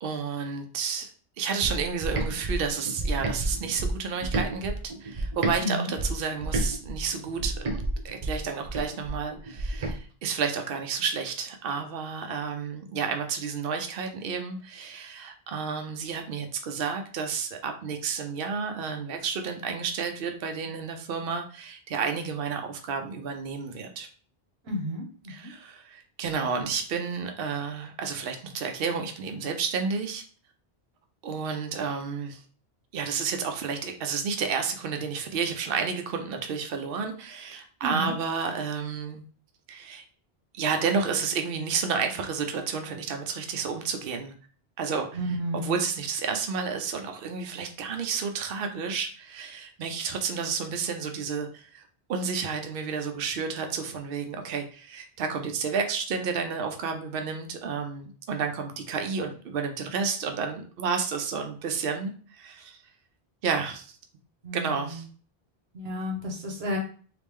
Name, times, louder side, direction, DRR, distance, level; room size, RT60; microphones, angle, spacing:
voice 1, 0.0-1.1 1.4-4.8 5.0-7.5 8.0-24.1 25.3-30.2 31.2-32.4 32.9-39.2 39.7-40.0 40.5-44.3 44.8-51.8 52.1-62.8 63.4-63.9 64.5-65.0, right 5 dB, 70° right, 0.8 m, -31 dB
sound 1, 1.6-5.6 6.0-10.0, right 2 dB, 40° right, 0.5 m, -30 dB
voice 2, 5.6-5.9 24.6-25.5 37.8-38.1 45.1-45.7 64.4-64.9 65.7-66.8, equal, 90° right, 1.3 m, -31 dB
3.2 x 2.9 x 3.5 m
omnidirectional pair, 1.0 m